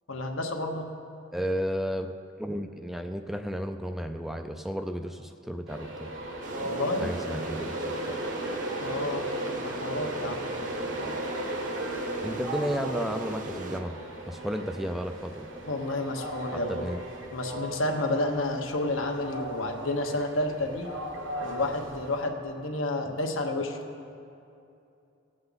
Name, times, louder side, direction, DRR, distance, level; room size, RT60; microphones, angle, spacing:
voice 1, 0.1-0.9 6.6-7.1 8.8-9.2 9.5-10.4 15.6-16.8 17.3-20.9 21.4-23.8, left 2 dB, 85° left, 2 dB, 1.2 m, -30 dB
voice 2, 1.3-2.1 2.4-6.1 7.0-8.2 8.8-9.0 10.9-11.2 12.2-14.0 14.3-15.5 16.5-17.0, equal, ahead, 6 dB, 0.4 m, -33 dB
Train, 5.7-22.3, right 2 dB, 70° right, 1.5 m, -36 dB
sound 1, 6.4-13.8, right 1 dB, 40° right, 0.8 m, -39 dB
18.5 x 7.7 x 4.0 m, 2.7 s
head